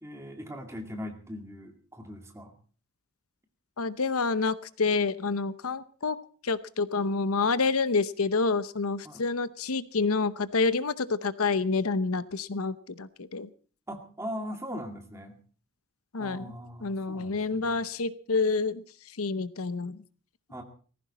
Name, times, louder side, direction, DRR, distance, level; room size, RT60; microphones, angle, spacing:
voice 1, 0.0-2.5 9.0-9.2 13.9-15.4 16.2-17.8 20.5-20.6, equal, 15° right, 4 dB, 2.2 m, -40 dB
voice 2, 3.8-6.2 6.4-13.5 16.1-16.5 16.8-20.0, left 4 dB, 85° left, 15 dB, 0.8 m, -28 dB
18.5 x 15.0 x 4.2 m, 0.40 s
head